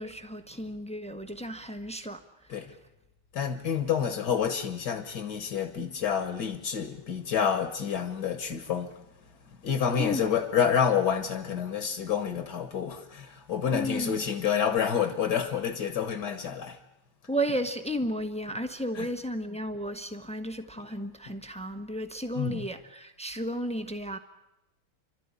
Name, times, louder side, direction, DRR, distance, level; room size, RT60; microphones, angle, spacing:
voice 1, 0.0-2.8 10.0-10.3 13.7-14.2 17.3-24.2, equal, 5° left, 0.7 m, -33 dB
voice 2, 3.3-8.9 9.6-16.8 17.5-17.6 19.0-19.1 22.4-22.7, left 7 dB, 55° left, 1.9 m, -28 dB
30.0 x 13.0 x 9.9 m
omnidirectional pair, 2.3 m